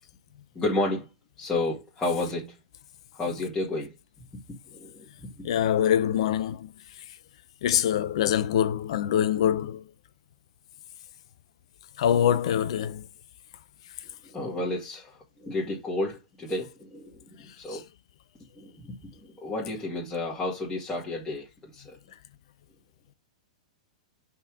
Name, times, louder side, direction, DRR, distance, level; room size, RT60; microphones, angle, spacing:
voice 1, 0.5-1.1 1.4-2.5 3.1-3.9 4.7-5.3 14.3-17.1 17.6-17.8 18.6-22.0, left 2 dB, 15° left, 2.3 m, -31 dB
voice 2, 5.4-6.7 7.6-9.8 12.0-13.1 17.7-17.8, left 10 dB, 60° left, 0.6 m, -24 dB
5.8 x 4.3 x 4.9 m
figure-of-eight pair, 100°, 4 cm